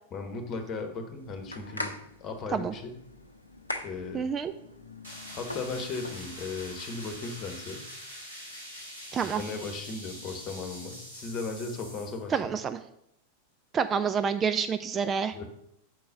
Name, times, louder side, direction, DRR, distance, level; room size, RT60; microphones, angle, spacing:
voice 1, 0.1-3.0 3.8-4.3 5.4-7.9 9.2-12.5 15.3-15.4, left 4 dB, 30° left, 6 dB, 1.3 m, -37 dB
sound 1, 1.2-6.8, left 1 dB, 80° left, 0.6 m, -42 dB
voice 2, 4.1-4.5 9.1-9.4 12.3-12.8 13.7-15.3, right 6 dB, 25° right, 10 dB, 0.3 m, -28 dB
sound 2, 5.0-12.2, equal, 70° right, 3.1 m, -44 dB
6.2 x 4.6 x 6.5 m, 0.76 s
figure-of-eight pair, 90°, 0 cm